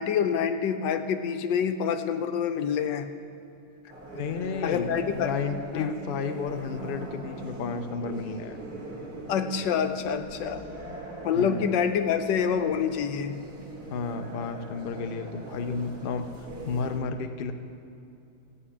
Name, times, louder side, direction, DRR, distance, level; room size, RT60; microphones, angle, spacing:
voice 1, 0.0-3.1 4.6-5.3 5.7-5.9 9.3-10.6 11.2-13.4, left 7 dB, 90° left, 8 dB, 1.4 m, -27 dB
sound 1, 3.9-17.0, right 2 dB, 60° right, 2.7 m, -41 dB
voice 2, 4.1-8.6 11.3-11.7 13.9-16.3 16.7-17.5, left 5 dB, 60° left, 7 dB, 0.5 m, -32 dB
15.0 x 5.6 x 8.6 m, 2.7 s
omnidirectional pair, 1.9 m